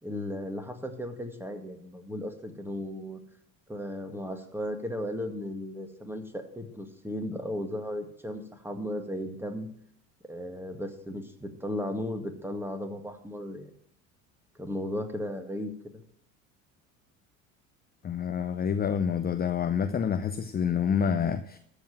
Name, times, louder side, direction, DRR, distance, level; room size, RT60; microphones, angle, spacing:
voice 1, 0.0-3.2 3.7-9.7 10.3-13.7 14.6-16.0, left 1 dB, 5° right, 2.0 m, -35 dB
voice 2, 18.0-21.6, left 7 dB, 25° left, 0.7 m, -28 dB
14.0 x 5.0 x 7.3 m
hypercardioid pair, 70°, 40 cm